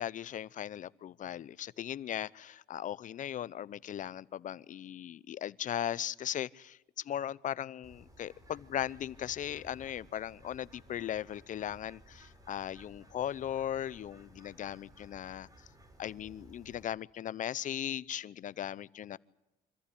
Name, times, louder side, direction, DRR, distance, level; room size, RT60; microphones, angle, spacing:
voice 1, 0.0-15.5 16.0-19.2, left 10 dB, 50° left, 0.7 m, -38 dB
Bird, 7.8-16.8, equal, 20° right, 4.8 m, -58 dB
25.5 x 14.5 x 9.9 m
cardioid pair, 110°, 17 cm